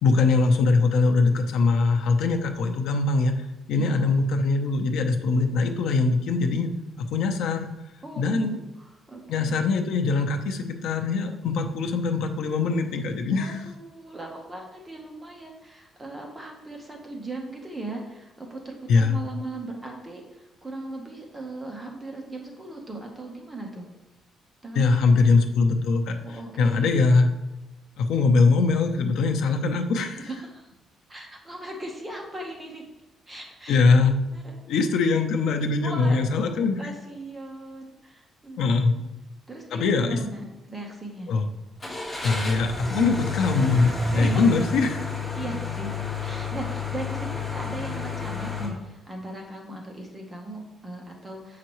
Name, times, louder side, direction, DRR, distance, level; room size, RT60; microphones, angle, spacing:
voice 1, 0.0-3.3 3.7-6.7 7.0-7.7 8.2-8.6 9.3-13.6 18.9-19.2 24.7-26.2 26.6-27.3 28.0-30.3 33.7-34.2 34.7-36.8 38.6-38.9 39.7-40.2 41.3-41.5 42.2-45.1, left 4 dB, 75° left, 5 dB, 0.7 m, -22 dB
voice 2, 3.7-4.2 8.0-8.5 8.8-9.6 13.3-23.9 24.6-25.2 26.2-26.9 30.2-30.7 31.1-32.8 33.3-33.8 34.3-34.6 35.8-39.1 39.5-41.3 44.1-44.4 45.3-51.6, right 2 dB, 15° right, 0 dB, 1.0 m, -38 dB
Car / Engine starting, 41.8-48.7, left 3 dB, 20° left, 2.4 m, -30 dB
7.4 x 5.8 x 3.1 m, 1.0 s
cardioid pair, 140°, 0 cm